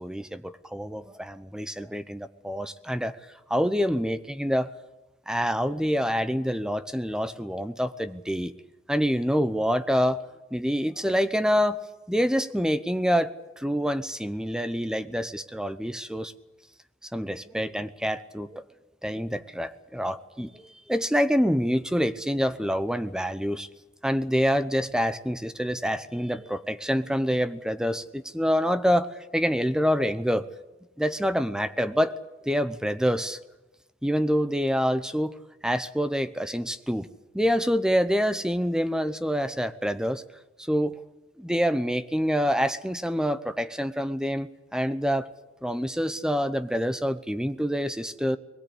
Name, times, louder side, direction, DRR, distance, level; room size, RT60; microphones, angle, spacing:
voice 1, 0.0-3.2 3.5-4.7 5.3-8.5 8.9-10.2 10.5-11.8 12.1-16.3 17.1-18.6 19.0-20.6 20.9-23.7 24.0-30.5 31.0-32.2 32.5-33.4 34.0-35.3 35.6-37.1 37.3-40.2 40.6-41.0 41.4-45.3 45.6-48.4, equal, 5° right, 12 dB, 0.8 m, -26 dB
22.0 x 20.5 x 8.4 m, 1.0 s
head